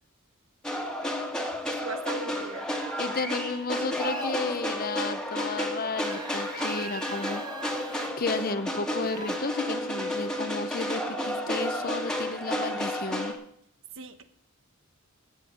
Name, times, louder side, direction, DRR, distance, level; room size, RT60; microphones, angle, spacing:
sound 1, 0.6-13.3, equal, 5° left, 1.8 m, -32 dB
voice 1, 1.6-2.7 14.0-14.2, right 3 dB, 65° right, 9 dB, 1.2 m, -38 dB
voice 2, 3.0-7.4 7.7-7.8 8.2-13.4, left 4 dB, 45° left, 11 dB, 0.8 m, -33 dB
sound 2, 4.0-4.4 6.0-8.1 9.0-9.4, right 3 dB, 20° right, 1.2 m, -39 dB
16.0 x 8.0 x 5.2 m, 0.68 s
head